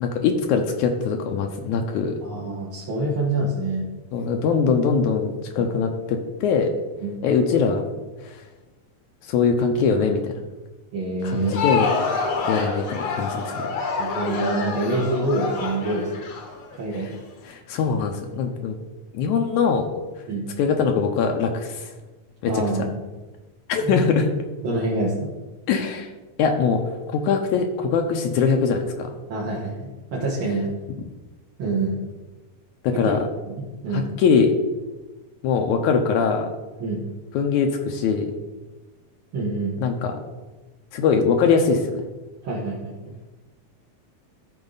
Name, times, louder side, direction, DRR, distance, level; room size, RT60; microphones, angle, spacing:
voice 1, 0.0-2.2 4.1-6.7 7.2-7.8 8.2-8.4 9.3-10.2 11.2-11.9 12.5-13.7 16.9-17.1 17.5-18.8 19.1-19.9 20.6-21.9 22.4-22.6 23.7-24.3 25.7-26.1 26.4-29.1 32.8-33.2 33.9-34.5 35.4-36.5 37.3-38.3 39.8-40.2 40.9-42.0, left 5 dB, 80° left, 3 dB, 2.0 m, -22 dB
voice 2, 2.2-3.9 5.6-5.7 7.0-7.2 10.0-10.1 10.9-11.6 14.0-16.3 16.7-17.1 20.3-20.4 22.5-23.0 23.8-24.0 24.6-25.3 29.3-30.7 31.6-32.0 32.9-33.1 33.5-34.1 36.8-37.0 39.3-39.7 42.4-43.1, right 2 dB, 50° right, -6 dB, 1.9 m, -26 dB
Crowd, 11.3-17.2, left 4 dB, 60° left, 1.5 m, -27 dB
13.5 x 4.8 x 3.9 m, 1.2 s
omnidirectional pair, 3.5 m